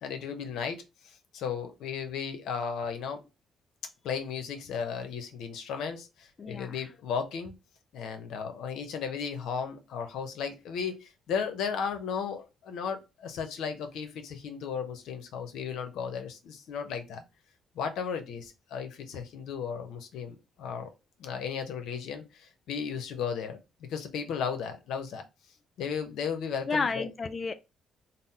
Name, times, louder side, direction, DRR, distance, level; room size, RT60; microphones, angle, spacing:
voice 1, 0.0-3.2 4.0-7.5 7.9-17.2 17.7-20.9 21.2-25.2 25.8-27.1, left 6 dB, 85° left, 0.7 m, -35 dB
voice 2, 6.4-6.9 26.7-27.5, left 4 dB, 40° left, 0.3 m, -31 dB
4.1 x 2.0 x 4.1 m
cardioid pair, 90°, 0 cm